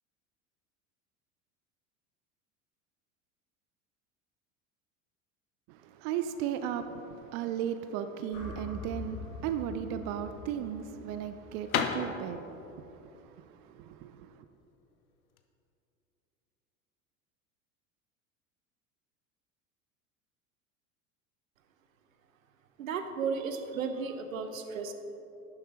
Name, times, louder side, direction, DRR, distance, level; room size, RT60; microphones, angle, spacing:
voice 1, 5.7-14.4, right 9 dB, 40° right, 9 dB, 0.5 m, -36 dB
sound 1, 8.3-12.5, left 2 dB, 40° left, 2.3 m, -44 dB
sound 2, 9.8-15.5, left 6 dB, 75° left, 0.8 m, -36 dB
voice 2, 22.8-24.9, right 5 dB, 70° right, 8 dB, 0.8 m, -34 dB
11.5 x 9.9 x 2.9 m, 2.9 s
figure-of-eight pair, 75°, 42 cm